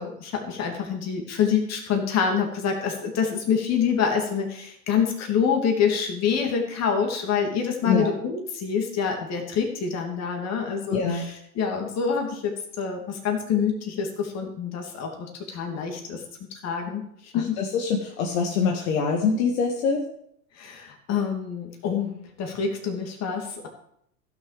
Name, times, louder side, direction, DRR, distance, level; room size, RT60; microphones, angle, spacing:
voice 1, 0.0-16.2 16.6-17.6 20.6-23.7, left 6 dB, 35° left, 2 dB, 2.8 m, -26 dB
voice 2, 7.9-8.2 10.9-11.3 17.3-20.1, left 5 dB, 60° left, 1 dB, 1.8 m, -24 dB
15.5 x 6.3 x 5.1 m, 0.72 s
hypercardioid pair, 100°, 47 cm